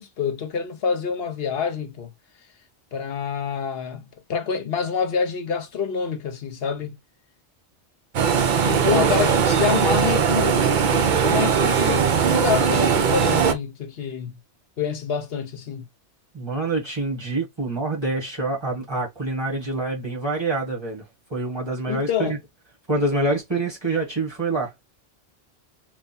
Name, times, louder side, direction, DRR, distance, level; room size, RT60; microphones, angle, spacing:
voice 1, 0.0-2.1 2.9-4.0 4.3-7.0 8.7-14.4 14.8-15.9 21.9-22.4, left 7 dB, 65° left, 0.9 m, -27 dB
sound 1, 8.1-13.5, right 6 dB, 55° right, 0.6 m, -19 dB
voice 2, 16.3-21.0 21.3-22.3 22.9-24.7, right 2 dB, 25° right, 1.6 m, -26 dB
3.5 x 2.4 x 4.1 m
omnidirectional pair, 1.2 m